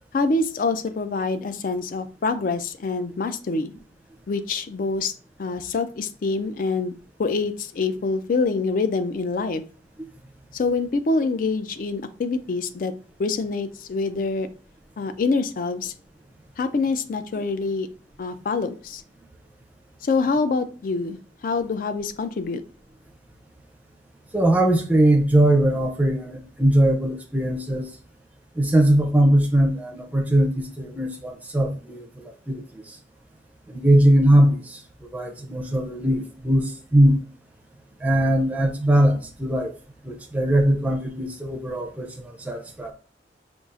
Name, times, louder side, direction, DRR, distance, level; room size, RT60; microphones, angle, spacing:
voice 1, 0.1-3.7 4.3-5.1 5.4-9.6 10.5-12.9 13.2-14.5 15.0-15.9 16.6-17.9 18.2-19.0 20.0-22.6, left 3 dB, 50° left, 0.3 m, -25 dB
voice 2, 24.3-27.9 28.6-32.6 33.7-34.8 35.1-37.2 38.0-39.7 40.0-42.9, right 1 dB, 10° right, 0.5 m, -20 dB
5.2 x 2.4 x 2.4 m
head